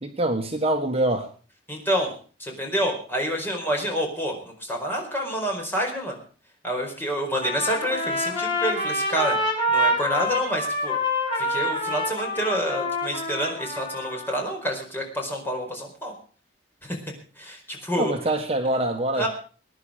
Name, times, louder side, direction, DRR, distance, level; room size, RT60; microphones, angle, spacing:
voice 1, 0.0-1.3 18.0-19.3, right 1 dB, 35° right, 4 dB, 1.5 m, -24 dB
voice 2, 1.7-2.1 2.4-6.2 6.6-9.4 9.7-10.9 11.4-16.1 16.8-17.0 17.4-18.1 19.2-19.3, equal, 10° left, 1 dB, 4.6 m, -28 dB
Trumpet, 7.4-14.3, left 1 dB, 25° left, 7.1 m, -26 dB
21.5 x 10.5 x 5.0 m, 0.40 s
head